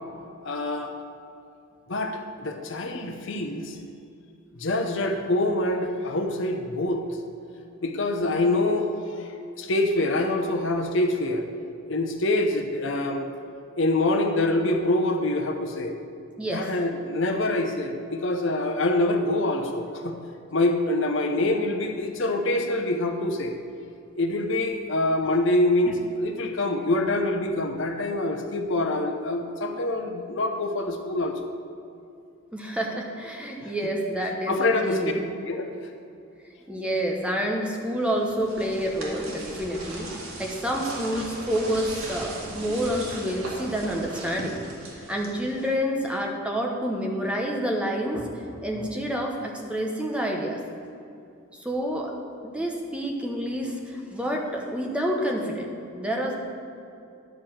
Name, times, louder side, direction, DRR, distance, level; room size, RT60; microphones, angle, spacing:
voice 1, 0.4-0.9 1.9-3.8 4.6-7.0 7.8-8.9 9.2-11.5 11.9-13.3 13.8-15.9 16.5-20.1 20.5-23.5 24.2-31.4 33.6-33.7 34.5-35.0 35.5-35.7, left 2 dB, 65° left, 4 dB, 0.8 m, -25 dB
voice 2, 32.5-35.3 36.7-40.1 40.4-44.6 44.9-50.6 51.5-52.1 52.5-56.3, equal, 5° right, 0 dB, 0.9 m, -28 dB
sound 1, 38.0-45.8, right 1 dB, 90° right, 2.3 m, -38 dB
10.5 x 4.9 x 7.4 m, 2.6 s
head